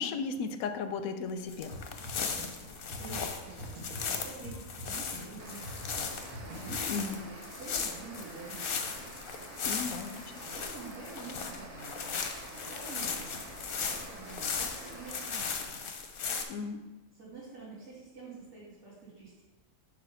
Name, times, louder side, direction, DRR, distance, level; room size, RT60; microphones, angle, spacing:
voice 1, 0.0-1.7 6.9-7.2 9.6-10.2 16.5-16.8, left 5 dB, 90° left, 9 dB, 1.0 m, -35 dB
sound 1, 1.5-16.4, left 6 dB, 55° left, 0.7 m, -37 dB
Drum kit, 1.7-7.2, equal, 80° right, 1.7 m, -45 dB
voice 2, 3.0-9.1 10.4-13.3 13.7-15.9 17.1-19.4, right 4 dB, 55° right, -13 dB, 2.5 m, -48 dB
sound 2, 5.4-15.5, right 2 dB, 35° right, 0.7 m, -48 dB
7.6 x 2.7 x 5.6 m, 1.1 s
omnidirectional pair, 1.4 m